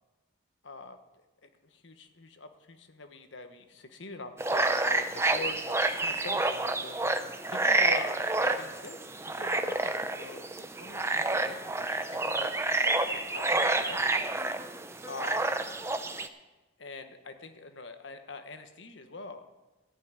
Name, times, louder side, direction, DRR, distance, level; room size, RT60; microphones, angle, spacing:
voice 1, 0.6-1.0 1.4-7.0 7.5-9.0 9.3-10.5 10.8-12.6 13.1-14.3 15.1-15.6 16.8-19.5, left 3 dB, 65° left, 7 dB, 1.2 m, -44 dB
sound 1, 4.4-16.3, right 2 dB, 15° right, 0.6 m, -29 dB
14.0 x 5.8 x 9.5 m, 1.1 s
head